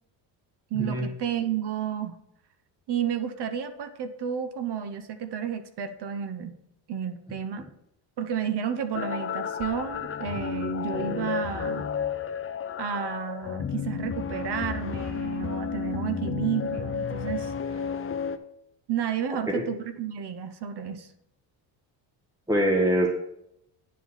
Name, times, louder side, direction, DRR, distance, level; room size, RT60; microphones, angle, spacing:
voice 1, 0.7-2.2 2.9-6.5 6.9-7.6 8.2-11.8 12.8-17.5 18.9-21.1, right 8 dB, 55° right, 10 dB, 1.0 m, -31 dB
sound 1, 8.9-18.4, left 7 dB, 30° left, 0.6 m, -32 dB
voice 2, 22.5-23.1, right 1 dB, 10° right, 2 dB, 1.3 m, -23 dB
9.6 x 4.7 x 5.7 m, 0.77 s
cardioid pair, 90°, 48 cm